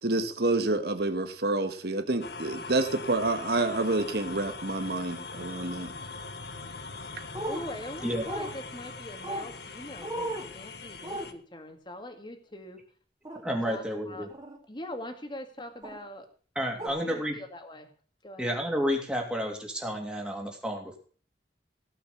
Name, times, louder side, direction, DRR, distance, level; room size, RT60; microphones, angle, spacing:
voice 1, 0.0-5.9, right 2 dB, 65° right, 8 dB, 1.5 m, -28 dB
sound 1, 2.2-11.3, left 4 dB, 65° left, 1.3 m, -41 dB
sound 2, 7.3-7.6 8.3-8.5 9.2-9.5 10.0-10.5 11.0-11.3 13.3-13.4 14.3-14.6 15.8-16.0 16.8-16.9, right 1 dB, 25° right, 3.0 m, -35 dB
voice 2, 7.4-12.8 13.6-14.3 14.7-16.3 16.7-17.9 18.2-18.5, left 1 dB, 25° left, 6 dB, 2.1 m, -42 dB
voice 3, 13.4-14.3 16.5-17.4 18.4-21.0, equal, 5° right, 1 dB, 2.9 m, -31 dB
17.5 x 6.0 x 7.0 m, 0.42 s
head